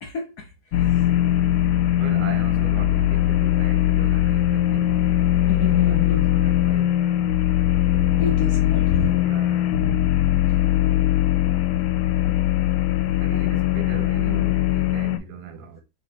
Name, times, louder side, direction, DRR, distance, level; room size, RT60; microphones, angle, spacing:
voice 1, 0.0-0.4 5.5-6.2 8.2-9.1, left 5 dB, 60° left, 1.1 m, -28 dB
sound 1, 0.7-15.2, left 13 dB, 90° left, 1.5 m, -20 dB
voice 2, 2.0-5.0 5.8-7.0 7.9-8.1 8.7-9.7 13.2-15.8, right 5 dB, 60° right, 1.2 m, -38 dB
3.6 x 2.9 x 4.5 m
omnidirectional pair, 2.3 m